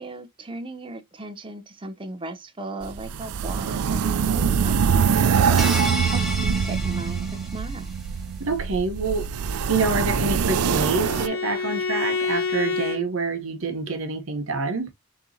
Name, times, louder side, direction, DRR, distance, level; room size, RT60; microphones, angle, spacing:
voice 1, 0.0-7.9, right 2 dB, 25° right, 0.6 m, -37 dB
sound 1, 2.8-11.3, right 6 dB, 90° right, 0.4 m, -23 dB
sound 2, 5.6-8.1, equal, ahead, 1.1 m, -32 dB
voice 2, 8.4-14.9, right 3 dB, 60° right, 0.8 m, -27 dB
Bowed string instrument, 9.5-13.0, left 4 dB, 75° left, 1.1 m, -29 dB
6.6 x 2.8 x 2.7 m
head